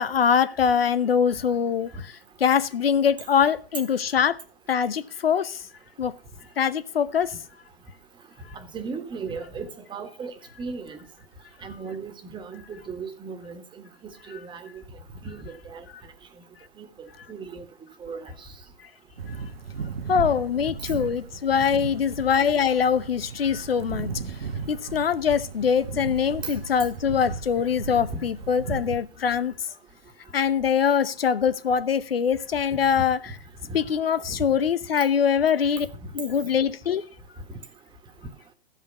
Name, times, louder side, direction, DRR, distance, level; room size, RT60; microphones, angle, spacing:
voice 1, 0.0-2.1 2.4-4.4 4.7-5.6 6.0-6.1 6.6-7.3 14.3-14.4 19.3-19.4 20.1-24.1 24.7-29.5 30.3-33.2 33.7-35.9 36.1-37.0, left 7 dB, 80° left, 1.0 m, -23 dB
voice 2, 8.5-11.0 11.6-13.6 14.3-14.7 15.2-15.8 16.8-17.7 18.0-18.5 26.4-26.6 32.9-33.0 33.6-33.8 34.3-34.4 35.0-35.1, right 4 dB, 15° right, 1.6 m, -36 dB
sound 1, 19.2-29.0, right 5 dB, 85° right, 1.3 m, -36 dB
14.0 x 5.6 x 6.9 m
hypercardioid pair, 120°, 29 cm